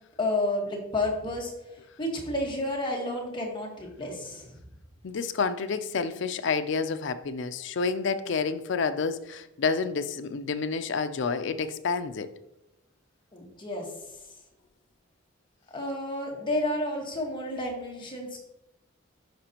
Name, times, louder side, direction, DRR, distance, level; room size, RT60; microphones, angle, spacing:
voice 1, 0.2-1.5 2.0-4.6 13.3-13.9 15.7-18.4, left 1 dB, 25° left, -1 dB, 1.4 m, -31 dB
voice 2, 5.0-12.3, left 5 dB, 60° left, 10 dB, 0.4 m, -29 dB
10.5 x 5.0 x 2.9 m, 0.91 s
head